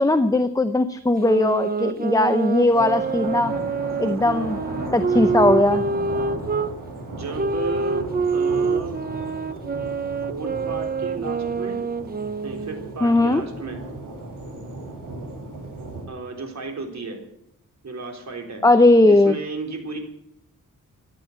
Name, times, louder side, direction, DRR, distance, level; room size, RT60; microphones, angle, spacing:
voice 1, 0.0-3.5 4.0-4.6 4.9-5.8 13.0-13.4 18.6-19.3, left 2 dB, 10° left, 10 dB, 0.7 m, -18 dB
sound 1, 1.2-6.7 7.4-12.9, right 4 dB, 30° right, 0.7 m, -26 dB
sound 2, 2.6-16.0, right 2 dB, 75° right, 7.9 m, -35 dB
voice 2, 7.1-9.0 10.3-11.8 12.4-13.8 16.1-17.2 17.8-18.6 19.0-20.0, right 4 dB, 55° right, 3 dB, 3.8 m, -33 dB
15.5 x 10.5 x 7.9 m, 0.80 s
wide cardioid pair, 125°, 33 cm